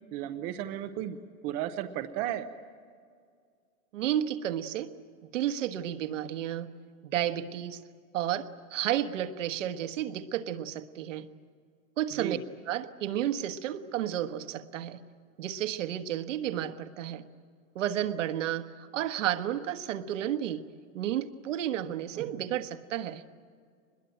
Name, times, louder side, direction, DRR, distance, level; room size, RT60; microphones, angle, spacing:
voice 1, 0.1-1.2 1.4-2.5 12.2-12.4, right 12 dB, 20° right, 7 dB, 0.6 m, -34 dB
voice 2, 3.9-4.9 5.2-6.7 7.1-7.8 8.1-11.3 12.0-12.4 12.7-15.0 15.4-17.2 17.7-20.6 20.9-23.2, right 11 dB, 65° right, 9 dB, 1.4 m, -32 dB
24.0 x 21.5 x 9.0 m, 2.1 s
hypercardioid pair, 155°, 41 cm